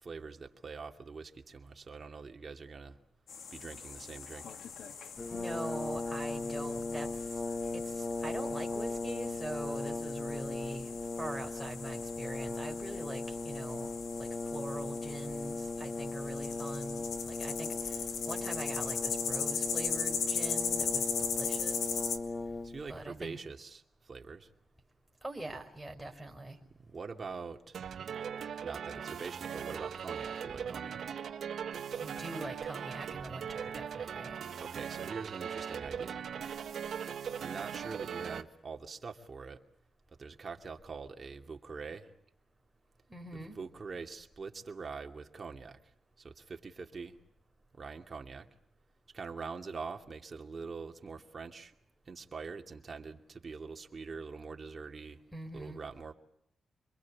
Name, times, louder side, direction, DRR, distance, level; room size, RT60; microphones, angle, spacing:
voice 1, 0.0-3.0 3.5-4.5 22.6-24.5 26.8-27.8 28.6-31.0 34.6-36.3 37.4-39.6 40.2-42.1 43.6-45.8 46.2-47.2 47.7-48.5 49.1-51.7 52.1-55.2 55.5-56.1, right 4 dB, 45° right, 3 dB, 2.5 m, -44 dB
sound 1, 3.3-22.2, left 6 dB, 80° left, 2.3 m, -39 dB
Brass instrument, 5.2-23.0, left 3 dB, 30° left, 1.4 m, -38 dB
voice 2, 5.3-7.4 7.7-13.9 14.2-22.0 22.9-23.4 25.2-26.6 32.0-34.4 43.1-43.6 55.3-55.8, right 1 dB, 5° right, 1 dB, 4.8 m, -43 dB
sound 2, 27.7-38.4, right 7 dB, 75° right, 1.5 m, -39 dB
26.5 x 22.0 x 8.6 m, 0.76 s
cardioid pair, 70°, 0 cm